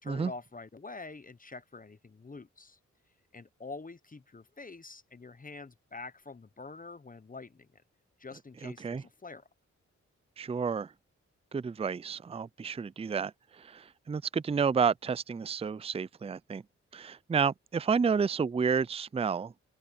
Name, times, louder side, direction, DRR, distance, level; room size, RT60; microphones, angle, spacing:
voice 1, 0.0-2.8 3.3-7.8 8.2-9.5, left 3 dB, 30° left, 0.9 m, -46 dB
voice 2, 8.6-9.0 10.4-10.9 11.5-16.6 16.9-19.5, right 6 dB, 20° right, 0.4 m, -30 dB
open air
cardioid pair, 55°, 29 cm